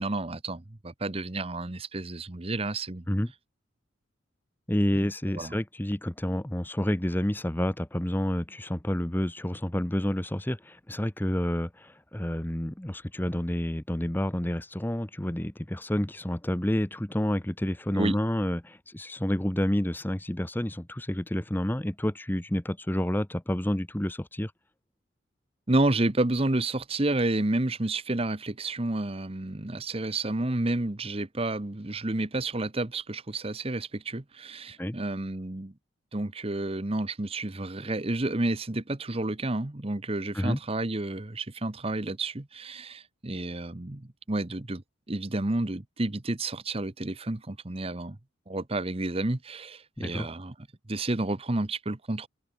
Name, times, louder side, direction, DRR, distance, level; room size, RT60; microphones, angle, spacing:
voice 1, 0.0-3.0 5.0-5.5 17.9-18.2 25.7-35.7 36.1-48.2 48.5-50.5 50.9-52.3, right 2 dB, 30° right, 1.0 m, -30 dB
voice 2, 4.7-24.5 34.8-35.0 40.3-40.6 50.0-50.3, left 1 dB, 10° left, 0.7 m, -29 dB
head